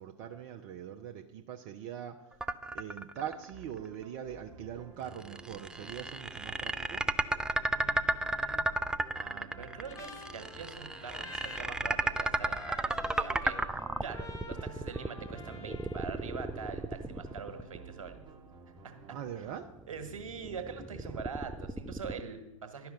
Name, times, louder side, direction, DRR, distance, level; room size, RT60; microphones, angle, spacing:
voice 1, 0.0-2.2 2.7-7.0 19.1-19.7, right 9 dB, 40° right, 4 dB, 0.7 m, -42 dB
sound 1, 2.4-3.5 3.9-4.0 5.2-18.2 19.4-22.2, right 2 dB, 5° right, 0.3 m, -34 dB
sound 2, 3.3-19.3, right 4 dB, 25° right, 1.4 m, -53 dB
voice 2, 7.7-8.6 9.1-13.6 14.0-18.2 18.8-18.9 19.9-22.9, right 6 dB, 70° right, 7 dB, 1.6 m, -44 dB
Trumpet, 9.5-16.3, left 3 dB, 15° left, 1.3 m, -48 dB
11.5 x 5.7 x 7.8 m, 1.0 s
figure-of-eight pair, 95°, 18 cm